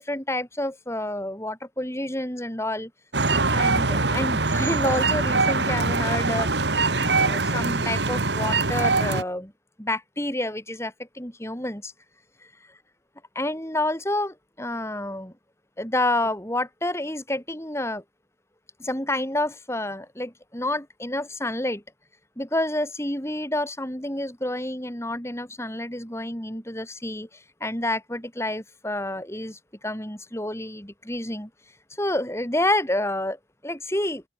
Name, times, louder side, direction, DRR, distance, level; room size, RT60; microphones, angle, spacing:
voice 1, 0.0-2.9 3.5-6.6 7.0-9.5 9.8-11.9 13.4-15.3 15.8-18.0 18.8-21.8 22.4-27.3 27.6-31.5 32.0-34.2, left 1 dB, 15° left, 6.8 m, -29 dB
sound 1, 3.1-9.2, right 3 dB, 80° right, 2.4 m, -23 dB
open air
head